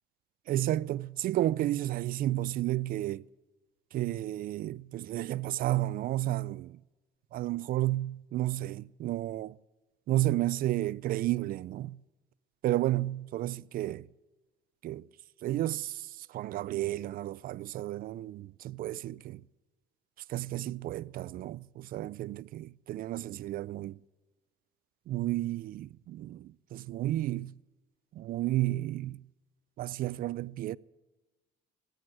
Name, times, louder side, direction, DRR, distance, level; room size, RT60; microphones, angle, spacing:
voice 1, 0.5-3.2 3.9-6.8 7.3-9.6 10.1-12.0 12.6-14.1 14.8-15.1 15.4-19.4 20.3-24.0 25.1-27.5 28.1-29.2 29.8-30.8, right 15 dB, 60° right, 0.4 m, -32 dB
17.5 x 7.9 x 9.6 m
cardioid pair, 110°, 17 cm